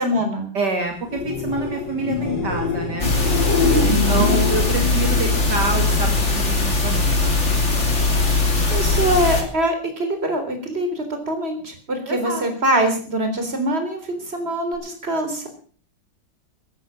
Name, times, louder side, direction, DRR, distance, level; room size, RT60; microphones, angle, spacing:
voice 1, 0.0-0.5 3.6-4.3 8.7-15.5, right 1 dB, 30° right, 6 dB, 4.0 m, -23 dB
voice 2, 0.5-3.1 3.8-7.3 12.1-12.4, right 3 dB, 55° right, 3 dB, 2.9 m, -27 dB
sound 1, 1.0-6.8 7.1-7.7 14.7-14.8, left 5 dB, 60° left, 3.8 m, -27 dB
sound 2, 3.0-9.4, left 3 dB, 35° left, 3.4 m, -20 dB
13.5 x 12.0 x 7.4 m, 0.43 s
omnidirectional pair, 2.2 m